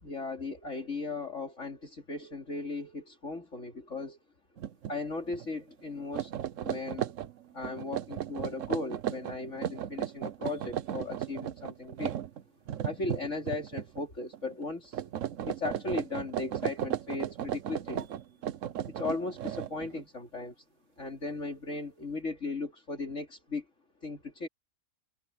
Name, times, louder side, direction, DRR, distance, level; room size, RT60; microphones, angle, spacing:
voice 1, 0.0-4.2 4.8-6.3 6.6-7.1 7.5-12.2 12.8-15.0 15.4-18.1 18.9-20.5 21.0-23.7 24.0-24.5, left 3 dB, 50° left, 3.5 m, -37 dB
sound 1, 4.6-4.9 5.3-5.5 6.0-14.0 14.3-14.7 14.9-20.0, right 10 dB, 60° right, 1.0 m, -36 dB
omnidirectional pair, 1.7 m